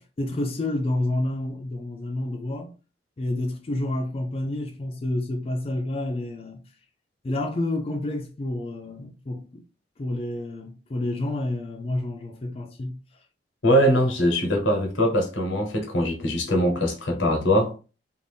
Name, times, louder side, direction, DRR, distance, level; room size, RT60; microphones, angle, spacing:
voice 1, 0.2-2.7 3.2-6.6 7.2-9.6 10.0-12.9, left 1 dB, 30° left, 0.4 m, -29 dB
voice 2, 13.6-17.7, equal, 90° left, 1.1 m, -22 dB
2.6 x 2.5 x 3.3 m
head